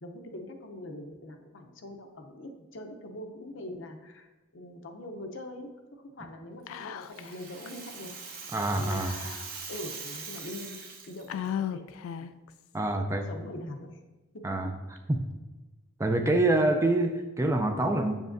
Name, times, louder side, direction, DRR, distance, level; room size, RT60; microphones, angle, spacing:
voice 1, 0.0-4.3 4.5-8.1 8.4-8.5 8.8-9.3 9.7-10.7 11.1-11.9 12.2-12.3 12.9-14.0 14.3-14.6, left 1 dB, 65° left, 5 dB, 0.7 m, -43 dB
Whispering, 6.7-7.4 7.7-7.8 8.9-9.8 10.4-10.5 11.3-12.5, left 9 dB, 85° left, 0.3 m, -36 dB
Rattle (instrument), 6.7-11.5, right 5 dB, 45° right, 0.9 m, -42 dB
voice 2, 8.5-9.2 12.7-13.3 14.4-14.7 15.1-15.2 16.0-18.2, right 2 dB, 15° right, 5 dB, 0.4 m, -26 dB
7.2 x 6.7 x 2.6 m, 1.1 s
head